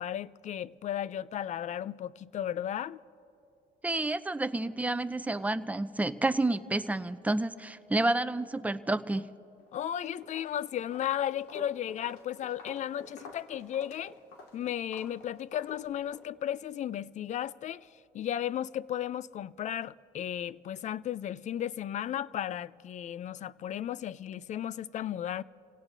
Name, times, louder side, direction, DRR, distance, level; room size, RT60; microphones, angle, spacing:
voice 1, 0.0-3.0 9.7-14.2 14.5-17.9 18.1-25.4, left 10 dB, 45° left, 0.4 m, -35 dB
voice 2, 3.8-9.2, right 2 dB, 10° right, 0.5 m, -30 dB
Walk footsteps, 9.6-9.9 10.2-16.3, left 3 dB, 90° left, 2.0 m, -50 dB
28.5 x 17.0 x 2.7 m
cardioid pair, 110°, 17 cm